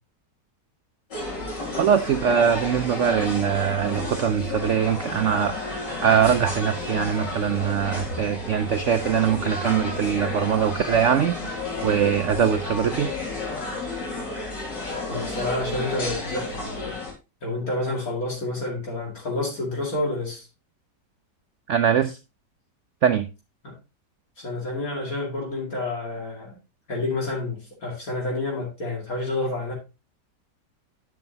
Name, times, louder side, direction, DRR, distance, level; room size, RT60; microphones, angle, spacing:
sound 1, 1.1-17.1, left 2 dB, 80° left, 3.5 m, -32 dB
voice 1, 1.8-5.6 6.0-11.4 11.8-13.1 21.7-22.2 23.0-23.3, right 8 dB, 80° right, 0.6 m, -22 dB
voice 2, 15.1-16.9 17.4-20.5 23.6-23.8 24.4-26.6 26.9-29.7, left 2 dB, 55° left, 2.8 m, -29 dB
11.0 x 6.1 x 2.8 m
omnidirectional pair, 1.9 m